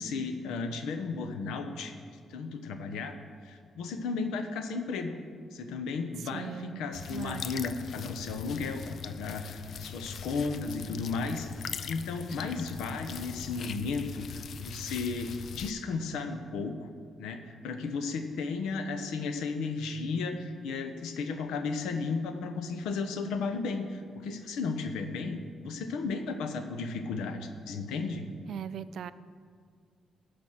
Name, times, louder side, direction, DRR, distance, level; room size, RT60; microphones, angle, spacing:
voice 1, 0.0-1.9 2.3-3.1 3.4-5.2 5.5-11.5 11.9-16.9 17.2-28.2, left 4 dB, 90° left, 7 dB, 0.9 m, -34 dB
voice 2, 6.3-6.8 7.1-7.5 28.5-29.1, right 8 dB, 70° right, 14 dB, 0.4 m, -39 dB
sound 1, 6.9-15.7, left 7 dB, 60° left, 0.5 m, -41 dB
15.5 x 5.2 x 5.9 m, 2.1 s
cardioid pair, 90°, 0 cm